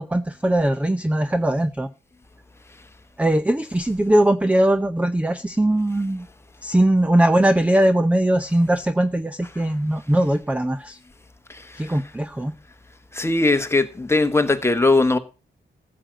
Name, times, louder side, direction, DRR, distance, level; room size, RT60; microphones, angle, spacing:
voice 1, 0.0-1.9 3.2-6.3 6.6-11.0 11.8-12.5, right 1 dB, 5° right, 0.5 m, -20 dB
voice 2, 13.1-15.2, left 2 dB, 15° left, 1.2 m, -19 dB
15.0 x 7.6 x 5.1 m
wide cardioid pair, 120°, 19 cm